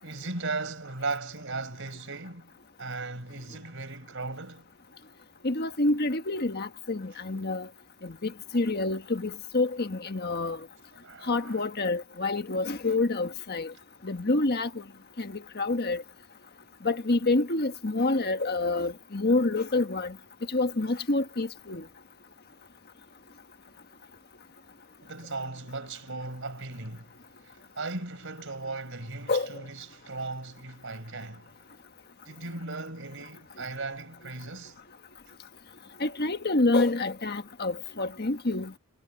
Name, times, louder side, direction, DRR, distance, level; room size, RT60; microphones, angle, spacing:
voice 1, 0.0-2.5 2.8-4.7 11.0-11.6 25.0-27.1 27.4-31.5 32.3-34.8, right 3 dB, 55° right, 4.6 m, -37 dB
voice 2, 5.4-7.7 8.0-10.6 11.3-13.7 14.0-14.8 15.2-16.0 16.8-20.2 20.5-21.8 29.3-29.5 36.0-38.8, left 2 dB, 45° left, 1.5 m, -27 dB
head